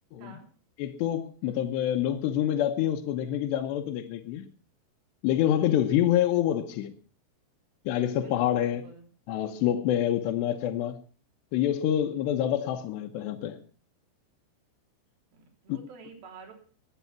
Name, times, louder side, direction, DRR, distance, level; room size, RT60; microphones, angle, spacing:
voice 1, 0.8-4.4 5.2-6.9 7.9-8.8 9.3-11.0 11.5-13.6 15.7-15.8, left 11 dB, 75° left, 3.0 m, -27 dB
voice 2, 8.1-9.0 10.2-10.3 15.3-16.5, right 5 dB, 55° right, 5.0 m, -49 dB
22.0 x 8.4 x 5.8 m
omnidirectional pair, 5.3 m